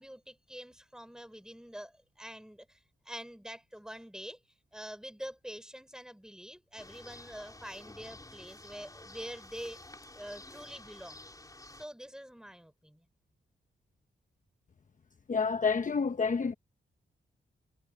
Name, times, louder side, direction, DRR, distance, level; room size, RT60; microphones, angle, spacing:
voice 1, 0.0-4.4 4.7-9.8 10.1-11.2 11.7-13.1, equal, 5° right, 4.2 m, -46 dB
sound 1, 6.8-11.9, left 2 dB, 20° left, 4.0 m, -51 dB
voice 2, 15.3-16.5, left 5 dB, 40° left, 1.0 m, -28 dB
cardioid pair, 75°, 20 cm